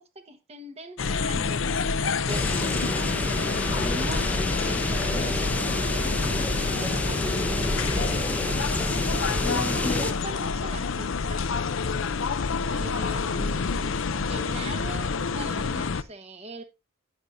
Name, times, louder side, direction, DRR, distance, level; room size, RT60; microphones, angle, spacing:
voice 1, 0.0-3.1 3.8-8.6 9.4-11.5 12.6-14.0 14.3-16.6, right 1 dB, 30° right, 1.3 m, -40 dB
sound 1, 1.0-16.0, left 5 dB, 70° left, 0.6 m, -28 dB
sound 2, 2.3-10.1, left 1 dB, 5° left, 0.7 m, -28 dB
11.5 x 10.0 x 2.7 m
head